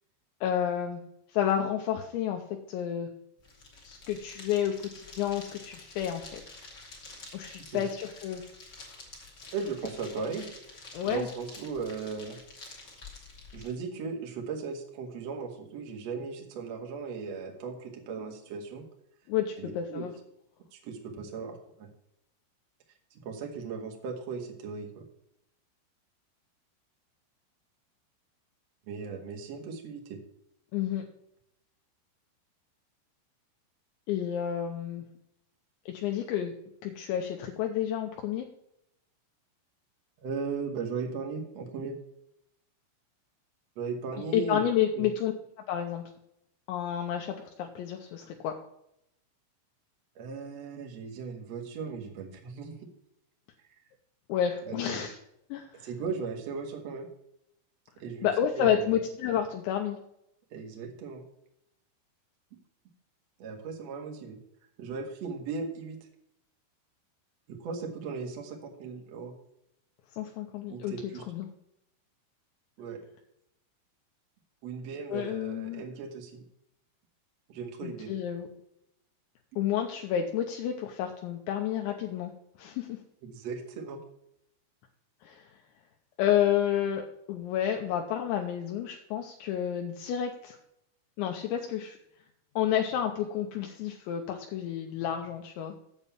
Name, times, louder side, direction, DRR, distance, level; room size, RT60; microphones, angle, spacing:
voice 1, 0.4-1.0 1.3-2.4 2.7-3.1 3.8-6.4 7.3-8.4 10.9-11.3 19.3-20.1 30.7-31.0 34.1-35.0 35.9-36.5 36.8-38.5 44.3-45.3 45.7-46.0 46.7-48.6 54.3-55.2 55.5-55.9 58.2-60.0 70.1-70.9 71.3-71.5 75.1-75.8 77.8-78.5 79.6-82.3 82.6-83.0 85.2-85.4 86.2-90.6 91.2-92.0 92.6-95.7, left 10 dB, 80° left, 3 dB, 2.8 m, -30 dB
sound 1, 3.4-13.7, left 3 dB, 40° left, 1.6 m, -49 dB
voice 2, 9.5-10.5 11.0-12.4 13.5-18.8 19.6-20.1 20.7-21.9 23.1-25.0 28.9-30.2 40.2-41.9 43.7-44.6 44.9-45.1 50.1-52.8 53.6-53.7 54.6-55.1 55.8-57.1 58.0-59.0 60.5-61.2 63.4-64.4 64.8-66.0 67.5-69.3 70.7-71.2 72.8-73.0 74.6-76.4 77.5-78.2 83.2-84.0, right 5 dB, 85° right, 2 dB, 1.4 m, -37 dB
8.2 x 7.3 x 6.8 m, 0.78 s
omnidirectional pair, 5.8 m